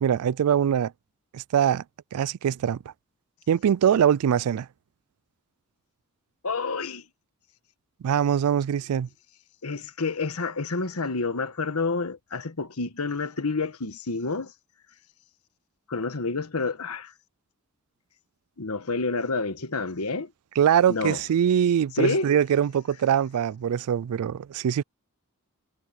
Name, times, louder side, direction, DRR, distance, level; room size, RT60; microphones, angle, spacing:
voice 1, 0.0-0.9 1.3-1.8 2.1-2.8 3.5-4.7 8.0-9.1 20.6-24.8, right 9 dB, 85° right, 0.3 m, -23 dB
voice 2, 6.4-7.0 9.6-14.5 15.9-17.1 18.6-20.3 20.9-21.2 21.9-22.3, left 3 dB, 85° left, 1.4 m, -29 dB
head